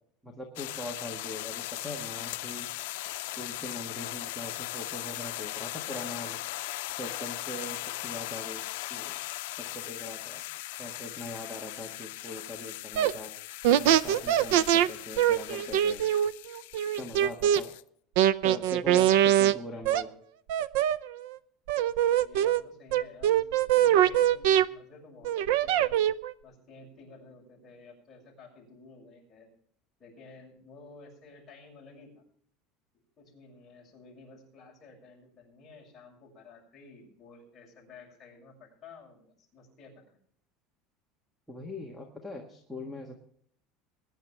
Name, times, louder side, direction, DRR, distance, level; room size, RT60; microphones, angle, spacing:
voice 1, 0.2-2.7 3.1-6.4 7.0-8.6 8.9-9.2 9.5-10.4 10.8-13.3 13.7-16.0 17.0-17.7 18.4-20.1 41.5-43.2, left 1 dB, ahead, 3 dB, 1.5 m, -41 dB
sound 1, 0.6-17.8, left 18 dB, 90° left, 0.6 m, -39 dB
sound 2, 13.0-13.1 13.6-14.9 15.2-17.6 18.2-19.5 19.8-20.0 20.5-21.3 21.7-22.6 22.9-24.7 25.2-26.3, right 11 dB, 70° right, 0.6 m, -23 dB
voice 2, 19.7-20.1 22.2-26.0 26.4-29.5 30.0-32.2 33.2-40.2, left 3 dB, 15° left, -4 dB, 6.7 m, -52 dB
21.5 x 10.5 x 3.4 m, 0.63 s
cardioid pair, 180°, 0 cm